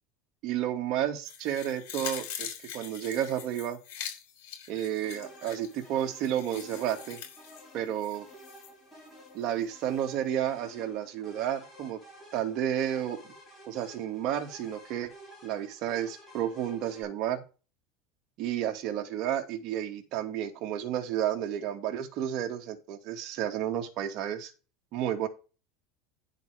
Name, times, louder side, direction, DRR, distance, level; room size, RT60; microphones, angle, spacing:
voice 1, 0.4-3.8 4.7-7.2 7.7-8.2 9.3-12.0 12.3-13.3 13.7-15.1 15.4-17.4 18.4-24.5 24.9-25.3, right 10 dB, 50° right, 3 dB, 2.3 m, -31 dB
sound 1, 1.2-8.7 9.1-9.2, left 9 dB, 75° left, 5.9 m, -43 dB
sound 2, 5.0-17.0, equal, 10° left, 6.9 m, -52 dB
11.0 x 8.0 x 3.6 m, 0.32 s
supercardioid pair, 140°, 0 cm